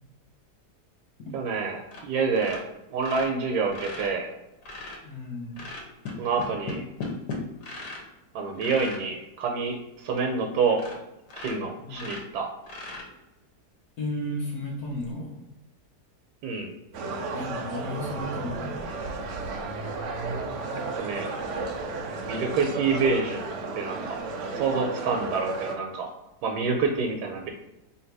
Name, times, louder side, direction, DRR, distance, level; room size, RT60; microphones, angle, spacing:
voice 1, 1.3-2.6 2.9-4.3 6.2-6.8 8.3-10.8 11.4-12.5 16.4-16.7 21.0-21.3 22.3-23.4 23.7-24.2 24.5-26.1 26.4-27.5, right 4 dB, 80° right, 2 dB, 1.2 m, -27 dB
sound 1, 1.9-2.1 2.3-5.0 5.5-8.1 8.5-9.0 9.7-9.8 10.1-10.2 10.7-11.0 11.3-13.4 14.9-15.1, left 3 dB, 85° left, 1.6 m, -38 dB
voice 2, 5.0-5.6 11.8-12.1 14.0-15.5 17.3-18.9, left 1 dB, 65° left, -3 dB, 1.2 m, -34 dB
sound 2, 16.9-25.8, right 3 dB, 65° right, 0.8 m, -33 dB
3.3 x 2.8 x 4.5 m, 0.94 s
omnidirectional pair, 1.7 m